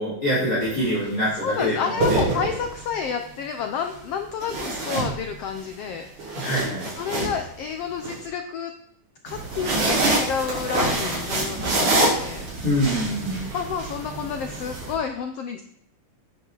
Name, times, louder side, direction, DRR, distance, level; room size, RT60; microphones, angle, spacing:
voice 1, 0.0-2.3 6.4-6.9 12.6-13.5, equal, 30° left, -7 dB, 4.8 m, -25 dB
sound 1, 0.6-0.9 1.8-2.9 4.4-5.6 6.0-8.1 9.3-14.9, right 2 dB, 70° right, 4.9 m, -26 dB
voice 2, 1.4-6.5 7.0-8.7 9.2-12.5 13.5-15.6, left 6 dB, 85° left, 7 dB, 1.3 m, -30 dB
12.0 x 9.8 x 4.0 m, 0.70 s
omnidirectional pair, 3.8 m